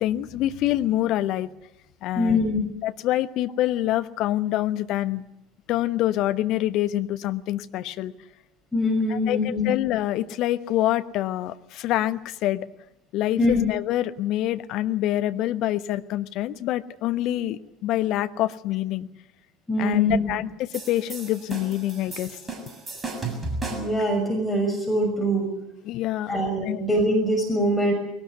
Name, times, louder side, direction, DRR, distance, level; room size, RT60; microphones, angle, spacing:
voice 1, 0.0-1.5 2.0-2.5 2.8-5.2 5.7-8.1 9.1-12.7 13.1-19.1 19.8-22.4 25.8-26.8, left 14 dB, 50° left, 11 dB, 1.1 m, -26 dB
voice 2, 2.2-2.6 8.7-9.7 13.4-13.6 19.7-20.2 23.7-25.5 26.3-27.9, left 1 dB, 10° left, 2 dB, 6.1 m, -23 dB
sound 1, 20.7-24.0, right 3 dB, 20° right, 6.8 m, -34 dB
21.5 x 19.0 x 9.5 m, 0.83 s
figure-of-eight pair, 65°, 0 cm